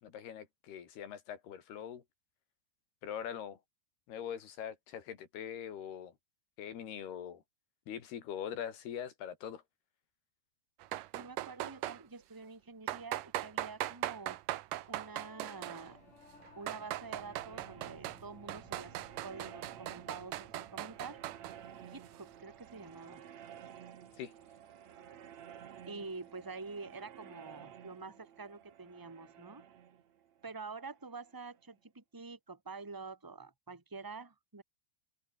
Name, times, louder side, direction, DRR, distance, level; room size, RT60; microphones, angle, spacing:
voice 1, 0.0-2.0 3.0-3.6 4.1-6.1 6.6-7.4 7.9-9.6 24.2-24.3, left 9 dB, 85° left, 4.8 m, -42 dB
sound 1, 10.8-12.0 12.9-15.9 16.4-18.2 18.5-21.6, right 15 dB, 70° right, 2.3 m, -39 dB
voice 2, 11.1-14.4 14.9-16.0 16.5-21.2 21.8-23.2 25.8-29.6 30.4-34.6, right 4 dB, 15° right, 0.6 m, -47 dB
Singing / Musical instrument, 14.7-24.3, left 4 dB, 55° left, 8.7 m, -62 dB
sound 2, 15.1-31.6, right 9 dB, 55° right, 2.6 m, -54 dB
omnidirectional pair, 4.5 m